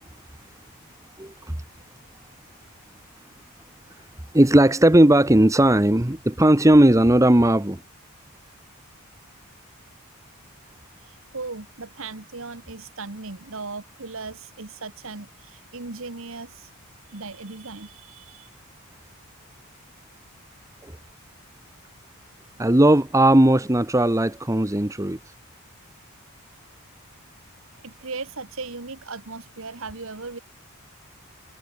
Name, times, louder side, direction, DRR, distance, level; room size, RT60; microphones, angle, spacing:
voice 1, 1.2-1.5 4.3-7.8 22.6-25.2, right 1 dB, 15° right, 1.0 m, -17 dB
voice 2, 11.0-16.7 17.1-18.5 27.8-30.4, right 3 dB, 60° right, 1.5 m, -37 dB
head